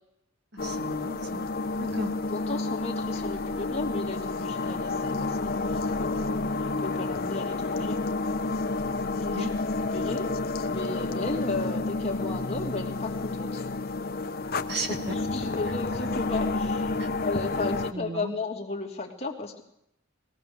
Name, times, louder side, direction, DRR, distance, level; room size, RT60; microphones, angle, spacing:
sound 1, 0.6-17.9, left 3 dB, 45° left, 0.9 m, -30 dB
voice 1, 0.6-1.5 1.8-2.1 9.4-9.5 14.7-15.1 17.0-17.1 17.9-18.3, right 2 dB, 55° right, 4 dB, 2.2 m, -34 dB
voice 2, 2.3-8.0 9.1-9.5 9.9-10.3 10.7-13.6 14.8-19.6, left 3 dB, 30° left, 0 dB, 2.8 m, -34 dB
21.0 x 18.0 x 7.0 m, 0.78 s
head